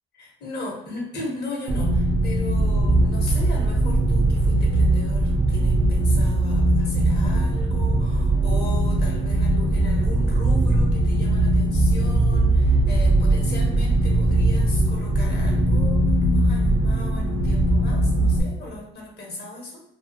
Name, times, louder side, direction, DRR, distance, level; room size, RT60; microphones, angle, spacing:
voice 1, 0.1-19.8, left 1 dB, 55° left, -2 dB, 0.9 m, -36 dB
sound 1, 1.7-18.4, right 1 dB, 25° right, 0.4 m, -20 dB
2.3 x 2.2 x 2.6 m, 0.84 s
cardioid pair, 90°, 20 cm